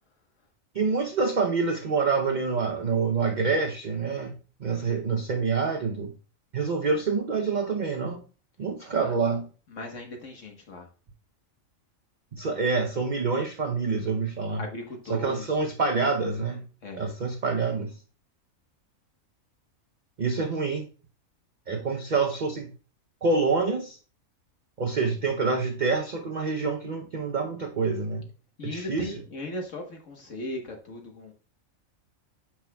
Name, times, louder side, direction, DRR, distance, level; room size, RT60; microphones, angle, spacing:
voice 1, 0.7-6.1 6.5-8.2 8.6-9.5 12.3-14.6 15.1-16.6 17.0-17.9 20.2-20.9 21.7-22.7 23.2-24.0 24.8-28.3 28.6-29.1, right 4 dB, 40° right, 4 dB, 0.8 m, -27 dB
voice 2, 9.7-10.9 14.6-15.6 16.8-17.0 28.6-31.3, left 2 dB, 70° left, 2 dB, 1.6 m, -37 dB
8.7 x 5.9 x 2.3 m, 0.37 s
omnidirectional pair, 1.4 m